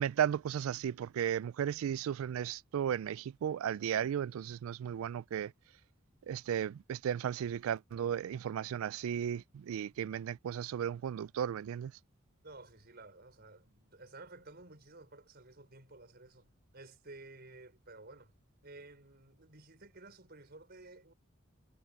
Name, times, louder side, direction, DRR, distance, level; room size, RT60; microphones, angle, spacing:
voice 1, 0.0-5.5 6.3-11.9, right 9 dB, 80° right, 0.3 m, -35 dB
voice 2, 12.4-18.3 18.6-21.1, right 2 dB, 50° right, 5.3 m, -54 dB
head